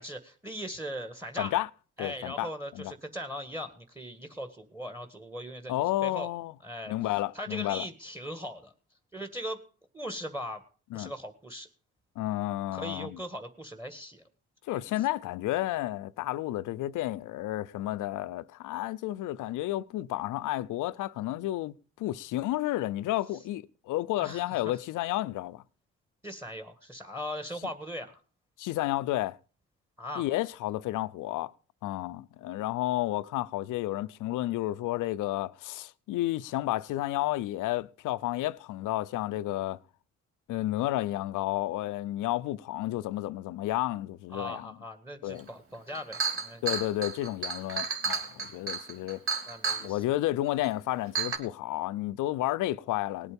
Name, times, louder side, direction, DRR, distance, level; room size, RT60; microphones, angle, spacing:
voice 1, 0.0-1.5 2.0-6.3 6.6-8.7 9.1-9.6 9.9-10.6 10.9-11.7 12.7-14.2 14.7-15.1 24.2-24.6 26.2-28.2 30.0-30.3 44.3-46.6 49.5-50.0, equal, 10° right, 1.8 m, -39 dB
voice 2, 1.4-1.7 2.0-2.5 2.7-2.9 5.7-6.5 6.9-7.9 10.9-11.1 12.2-13.2 14.7-25.6 28.6-29.4 30.2-31.5 31.8-39.8 40.5-44.7 45.2-45.5 46.6-49.2 49.8-53.3, left 15 dB, 85° left, 0.7 m, -31 dB
Chink clink, 45.5-45.6 45.9-49.9 50.6-50.7 51.2-51.4, right 5 dB, 45° right, 2.4 m, -32 dB
19.0 x 8.3 x 5.3 m
cardioid pair, 90°, 30 cm